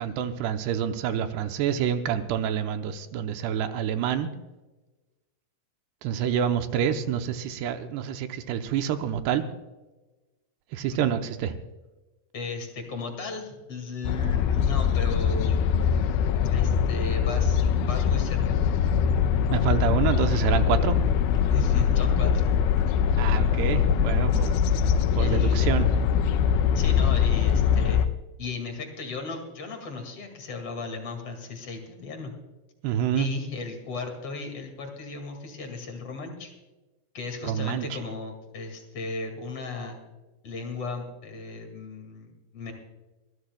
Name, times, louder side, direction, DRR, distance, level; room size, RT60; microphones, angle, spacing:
voice 1, 0.0-4.3 6.0-9.4 10.7-11.5 19.5-21.0 23.2-24.6 25.1-25.9 32.8-33.3 37.4-38.0, right 9 dB, 80° right, 8 dB, 2.7 m, -27 dB
voice 2, 12.3-15.6 16.5-18.5 21.5-22.4 25.2-25.7 26.7-28.0 28.4-32.3 33.1-36.5 37.1-40.0 40.4-42.7, left 3 dB, 45° left, 3 dB, 2.4 m, -36 dB
sound 1, 14.0-28.1, left 7 dB, 85° left, 2.2 m, -22 dB
sound 2, 15.1-27.9, left 5 dB, 65° left, 3.5 m, -40 dB
25.5 x 13.0 x 2.3 m, 1.1 s
omnidirectional pair, 5.0 m